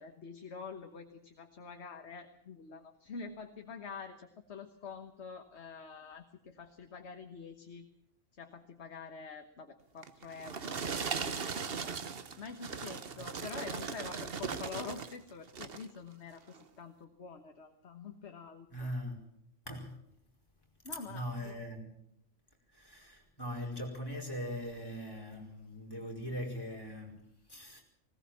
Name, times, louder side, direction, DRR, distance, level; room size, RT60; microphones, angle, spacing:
voice 1, 0.0-7.9 8.4-10.8 11.2-12.0 12.4-18.9 20.8-21.6, left 5 dB, 55° left, 1.6 m, -47 dB
sound 1, 10.0-15.2 15.5-15.9 16.5-16.6, right 5 dB, 50° right, 1.2 m, -38 dB
voice 2, 18.7-19.3 19.7-19.9 20.9-22.0 22.7-27.8, equal, 15° left, 5.1 m, -41 dB
20.0 x 18.5 x 7.3 m
omnidirectional pair, 1.3 m